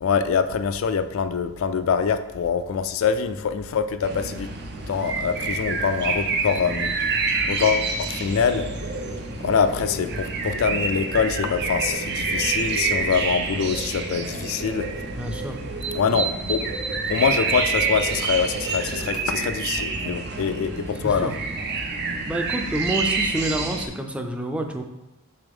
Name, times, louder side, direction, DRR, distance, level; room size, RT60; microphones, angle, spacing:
voice 1, 0.0-4.5 4.8-7.0 7.5-8.7 9.4-14.9 15.9-16.6 17.1-21.3, left 6 dB, 70° left, 10 dB, 0.4 m, -24 dB
sound 1, 3.3-21.7, right 1 dB, 35° right, 1.1 m, -45 dB
sound 2, 4.0-23.9, right 4 dB, 55° right, 0.6 m, -27 dB
voice 2, 15.1-15.6 21.0-21.3 22.3-24.8, right 1 dB, 5° right, 4 dB, 0.5 m, -28 dB
6.8 x 4.0 x 3.5 m, 0.97 s
head